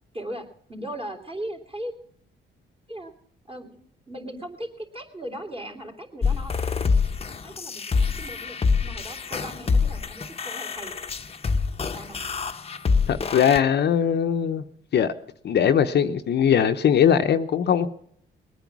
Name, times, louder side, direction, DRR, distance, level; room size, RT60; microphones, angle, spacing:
voice 1, 0.1-1.9 2.9-3.1 3.5-3.8 4.1-6.5 7.4-10.9 11.8-12.2, right 1 dB, 30° right, 3.2 m, -38 dB
sound 1, 6.2-13.6, left 5 dB, 30° left, 0.9 m, -26 dB
voice 2, 13.1-14.6 14.9-15.1 15.4-17.9, left 8 dB, 60° left, 0.8 m, -20 dB
20.5 x 9.2 x 6.1 m
cardioid pair, 90°, 20 cm